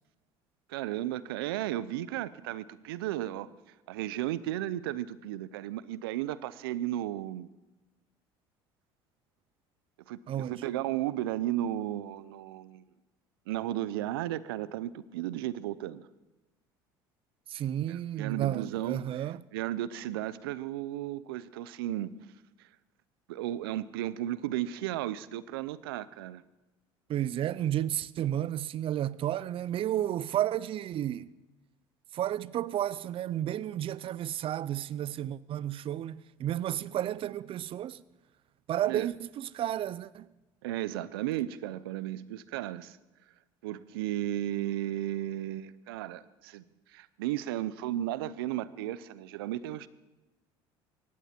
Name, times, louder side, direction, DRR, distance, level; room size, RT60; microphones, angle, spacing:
voice 1, 0.7-3.5 3.9-7.5 10.1-12.8 13.5-16.1 17.9-19.3 19.5-22.1 23.3-26.4 38.9-39.1 40.6-43.0 43.6-46.6 46.9-49.9, right 13 dB, 90° right, 0.6 m, -34 dB
voice 2, 10.3-10.6 17.5-19.4 27.1-31.3 32.1-38.0 38.7-40.3, right 11 dB, 50° right, 0.6 m, -32 dB
18.5 x 15.5 x 4.4 m
supercardioid pair, 85°, 12 cm